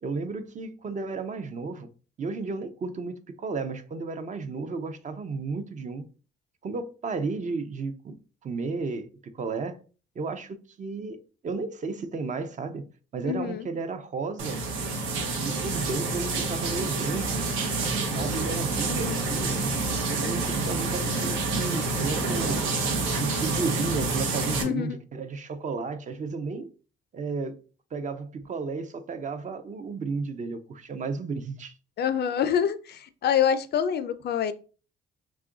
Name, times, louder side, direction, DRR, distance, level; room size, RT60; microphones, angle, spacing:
voice 1, 0.0-1.9 2.2-6.1 6.6-9.1 9.3-9.8 10.2-12.9 13.1-14.6 15.4-17.4 18.1-19.7 20.1-22.6 23.2-26.7 27.1-27.5 27.9-31.7, right 4 dB, 40° right, 0.5 m, -33 dB
voice 2, 13.3-13.7 18.9-19.3 24.6-25.0 32.0-34.5, left 8 dB, 55° left, 0.4 m, -26 dB
sound 1, 14.4-24.6, right 3 dB, 85° right, 0.7 m, -28 dB
2.9 x 2.4 x 3.6 m
cardioid pair, 90°, 20 cm